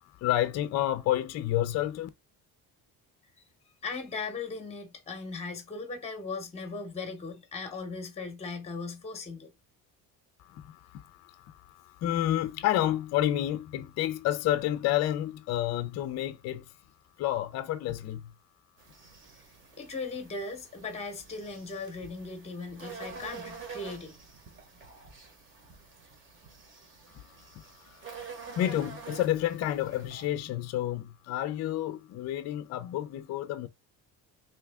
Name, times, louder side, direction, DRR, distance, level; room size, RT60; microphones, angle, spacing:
voice 1, 0.2-2.1 12.0-16.6 17.2-18.2 28.6-33.7, left 13 dB, 45° left, 0.4 m, -29 dB
voice 2, 3.8-9.5 19.8-24.2, left 4 dB, 15° left, 0.8 m, -38 dB
sound 1, 18.8-30.3, right 5 dB, 30° right, 1.0 m, -47 dB
3.4 x 2.8 x 3.4 m
cardioid pair, 160°, 38 cm